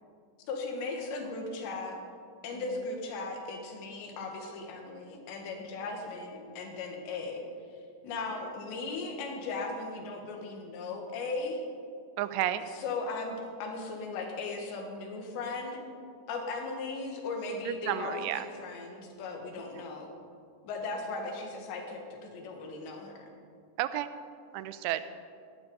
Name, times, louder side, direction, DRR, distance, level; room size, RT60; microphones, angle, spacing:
voice 1, 0.5-2.0 2.4-7.5 8.0-11.6 12.8-15.8 16.3-20.1 20.6-23.3, left 3 dB, 80° left, 2 dB, 3.9 m, -37 dB
voice 2, 12.2-12.6 17.6-18.5 19.8-19.9 23.8-24.1 24.5-25.0, right 13 dB, 85° right, 12 dB, 2.8 m, -32 dB
18.0 x 11.5 x 5.5 m, 2.3 s
omnidirectional pair, 5.0 m